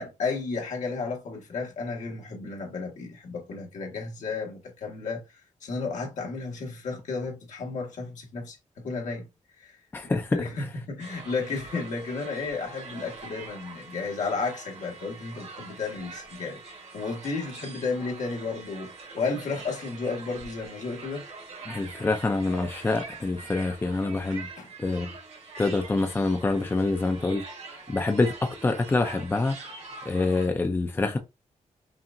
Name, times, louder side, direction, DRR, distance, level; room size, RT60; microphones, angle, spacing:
voice 1, 0.0-9.3 9.6-9.8 10.0-21.2 24.6-24.7, left 4 dB, 75° left, 1.5 m, -33 dB
voice 2, 9.9-10.3 21.7-24.5 24.8-25.1 25.6-27.4 27.9-29.7 30.0-31.2, left 3 dB, 15° left, 0.5 m, -26 dB
sound 1, 11.0-30.5, right 4 dB, 60° right, 1.3 m, -44 dB
5.6 x 2.4 x 2.5 m
wide cardioid pair, 135°, 13 cm